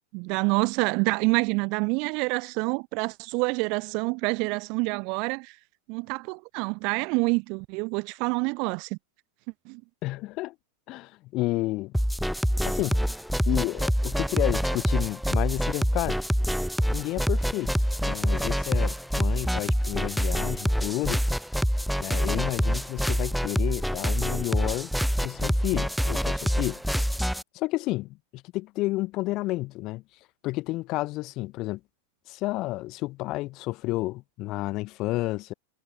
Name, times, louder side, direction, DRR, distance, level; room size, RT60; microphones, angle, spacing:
voice 1, 0.1-5.6 5.9-9.0 9.7-9.8, right 31 dB, 45° right, 1.9 m, -27 dB
voice 2, 10.0-10.5 10.9-11.9 12.7-13.0 13.5-16.2 16.9-21.2 22.0-24.9 25.2-26.8 27.5-30.0 30.4-31.8 32.3-35.5, left 19 dB, 40° left, 4.3 m, -31 dB
sound 1, 11.9-27.4, equal, ahead, 1.6 m, -26 dB
figure-of-eight pair, 90°, 0 cm